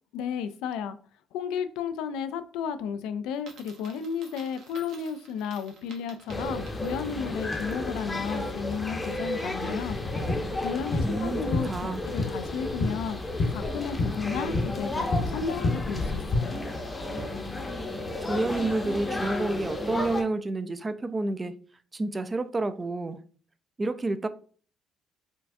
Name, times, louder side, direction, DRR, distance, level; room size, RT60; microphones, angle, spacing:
voice 1, 0.1-1.0 1.3-10.0 10.6-13.2 13.5-16.6, left 7 dB, 85° left, 0.3 m, -33 dB
Coin (dropping), 3.3-7.3, right 5 dB, 65° right, 0.9 m, -52 dB
sound 1, 6.3-20.2, left 2 dB, 20° left, 0.7 m, -33 dB
sound 2, 9.9-16.4, left 2 dB, 50° left, 0.9 m, -30 dB
voice 2, 11.0-12.0 18.2-21.6 21.9-23.2 23.8-24.3, right 2 dB, 25° right, 0.3 m, -29 dB
4.4 x 2.3 x 2.6 m
cardioid pair, 90°, 0 cm